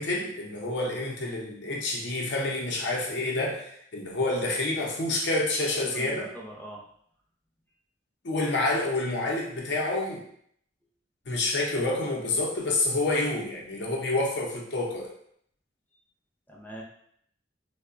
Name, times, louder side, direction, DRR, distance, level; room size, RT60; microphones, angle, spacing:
voice 1, 0.0-6.3 8.2-10.2 11.3-15.1, left 2 dB, 65° left, -1 dB, 0.6 m, -28 dB
voice 2, 5.7-6.8 16.5-16.8, right 1 dB, 10° left, -2 dB, 0.5 m, -42 dB
3.6 x 2.1 x 2.4 m, 0.67 s
head